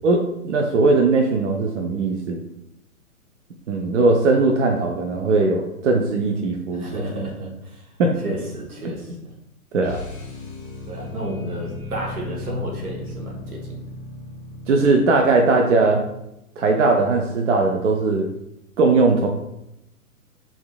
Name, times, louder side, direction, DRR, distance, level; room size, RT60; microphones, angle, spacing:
voice 1, 0.0-2.4 3.7-7.0 8.0-8.2 9.7-10.0 14.7-16.0 16.6-18.3 18.8-19.3, right 3 dB, 55° right, 2 dB, 0.5 m, -19 dB
voice 2, 6.7-7.8 8.2-9.1 10.9-13.6, equal, 75° right, -1 dB, 1.1 m, -31 dB
sound 1, 9.8-16.2, left 1 dB, 15° left, 0.5 m, -37 dB
3.6 x 2.4 x 2.3 m, 0.83 s
figure-of-eight pair, 120°, 44 cm